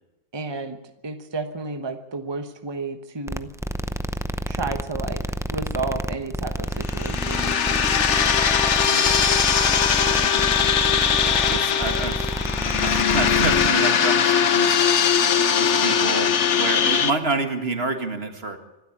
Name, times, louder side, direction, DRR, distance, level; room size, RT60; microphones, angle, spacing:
voice 1, 0.3-0.8 1.0-3.5 4.5-5.2 5.5-7.5, right 3 dB, 25° right, 7 dB, 1.1 m, -31 dB
sound 1, 3.3-13.7, equal, 5° right, 0.5 m, -29 dB
sound 2, 6.8-17.1, left 7 dB, 85° left, 1.3 m, -20 dB
voice 2, 8.9-9.3 11.2-12.3 12.8-14.8 15.6-18.6, right 3 dB, 60° right, 6 dB, 2.2 m, -28 dB
24.5 x 13.0 x 8.8 m, 0.97 s
omnidirectional pair, 1.2 m